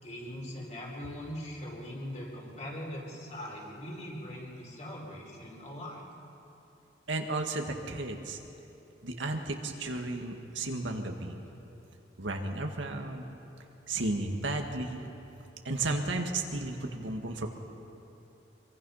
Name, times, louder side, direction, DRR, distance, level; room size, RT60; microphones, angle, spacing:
voice 1, 0.0-6.0, equal, 40° left, -3 dB, 4.7 m, -41 dB
voice 2, 7.1-8.4 9.0-11.4 12.2-13.3 13.9-15.1 15.6-17.5, right 2 dB, 85° right, 3 dB, 1.9 m, -33 dB
25.5 x 23.0 x 5.8 m, 2.9 s
head